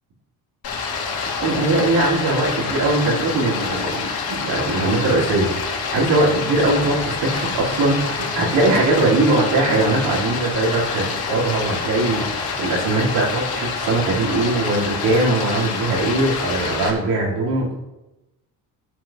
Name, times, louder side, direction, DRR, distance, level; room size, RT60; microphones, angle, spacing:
Stream, 0.6-16.9, left 5 dB, 70° left, 2.8 m, -27 dB
voice 1, 1.2-17.8, right 2 dB, 90° right, -6 dB, 4.6 m, -21 dB
17.0 x 7.6 x 3.2 m, 0.97 s
cardioid pair, 130°, 38 cm